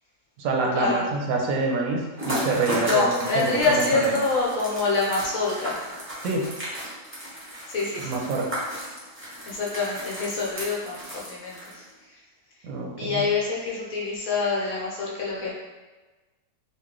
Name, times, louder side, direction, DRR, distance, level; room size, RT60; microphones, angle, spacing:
voice 1, 0.4-4.2 6.2-6.5 8.0-8.6 12.6-13.2, right 3 dB, 75° right, 0 dB, 1.0 m, -26 dB
sound 1, 2.2-11.9, equal, 15° right, 0.5 m, -35 dB
voice 2, 2.8-5.8 7.7-8.2 9.4-11.8 13.0-15.5, left 4 dB, 70° left, -4 dB, 1.2 m, -26 dB
3.1 x 2.3 x 3.6 m, 1.2 s
omnidirectional pair, 1.6 m